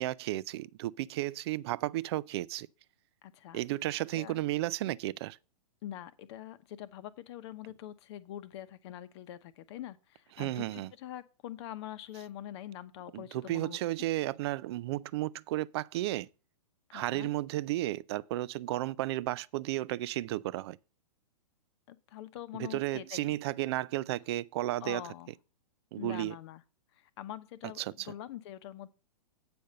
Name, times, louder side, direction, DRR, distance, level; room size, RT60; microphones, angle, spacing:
voice 1, 0.0-2.7 3.5-5.4 10.4-10.9 13.1-16.3 16.9-20.8 22.6-25.0 25.9-26.4 27.8-28.1, right 16 dB, 40° right, 0.4 m, -33 dB
voice 2, 3.2-3.6 4.1-4.4 5.8-13.8 16.9-17.3 21.9-23.4 24.8-25.3 26.0-26.6 26.9-28.9, left 12 dB, 45° left, 0.9 m, -44 dB
8.7 x 5.2 x 6.6 m
hypercardioid pair, 125°, 20 cm